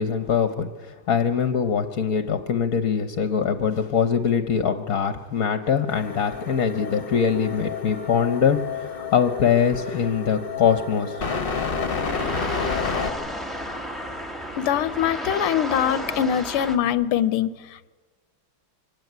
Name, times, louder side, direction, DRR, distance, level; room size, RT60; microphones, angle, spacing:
voice 1, 0.0-11.2, left 7 dB, 50° left, 8 dB, 1.4 m, -23 dB
sound 1, 5.9-13.1, left 5 dB, 30° left, 1.3 m, -30 dB
sound 2, 11.3-16.8, equal, ahead, 1.6 m, -33 dB
voice 2, 14.6-17.9, left 9 dB, 85° left, 14 dB, 1.8 m, -23 dB
24.0 x 17.5 x 9.4 m, 1.3 s
omnidirectional pair, 2.3 m